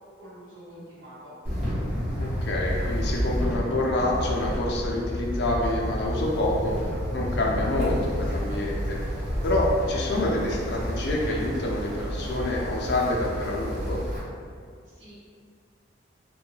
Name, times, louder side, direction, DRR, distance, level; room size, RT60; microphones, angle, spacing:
voice 1, 0.2-1.8 14.9-15.1, equal, 80° right, -10 dB, 1.0 m, -46 dB
Wind, 1.4-14.2, equal, 35° right, 0.9 m, -30 dB
voice 2, 2.4-6.7 7.1-9.0 9.4-14.0, left 1 dB, 55° left, -3 dB, 0.5 m, -27 dB
2.6 x 2.2 x 3.0 m, 2.1 s
head